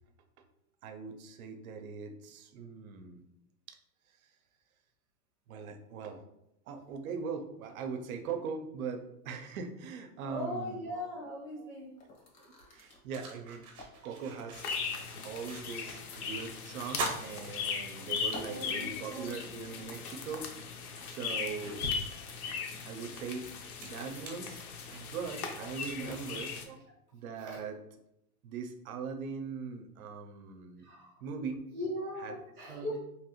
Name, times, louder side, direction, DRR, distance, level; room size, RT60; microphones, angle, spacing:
voice 1, 0.8-3.2 3.7-3.8 5.5-6.2 6.7-10.8 11.6-11.7 12.7-13.7 14.0-14.7 15.2-20.5 21.1-21.8 22.9-23.5 23.8-24.6 24.9-26.8 27.1-27.8 28.4-30.9 31.2-31.6 32.2-32.4 32.7-32.9, right 5 dB, 65° right, 6 dB, 0.6 m, -40 dB
voice 2, 10.3-11.9 18.5-18.9 19.1-19.3 25.9-26.1 27.4-27.6 30.8-31.1 31.7-33.0, left 1 dB, 5° left, -17 dB, 0.3 m, -39 dB
sound 1, 12.0-14.3 14.7-17.3 18.2-19.3, left 1 dB, 85° left, 1.3 m, -50 dB
sound 2, 12.1-12.2 12.7-16.1 16.4-16.5 16.9-18.4 18.8-18.9 20.3-20.4 21.0-25.2, right 2 dB, 30° right, 0.7 m, -43 dB
sound 3, 14.5-26.7, left 6 dB, 65° left, 0.6 m, -38 dB
3.0 x 2.3 x 2.9 m, 0.82 s
hypercardioid pair, 150°, 47 cm